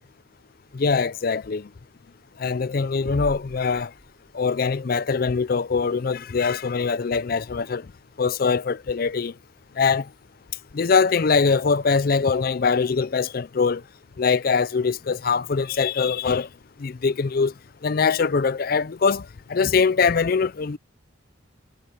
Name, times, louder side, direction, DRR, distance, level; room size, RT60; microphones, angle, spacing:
voice 1, 0.7-1.7 2.4-3.9 4.3-7.9 8.2-9.3 9.8-10.1 10.7-13.8 14.2-16.5 16.8-17.5 17.8-20.8, left 5 dB, 50° left, 0.4 m, -22 dB
sound 1, 3.0-4.8, equal, 90° left, 5.3 m, -39 dB
head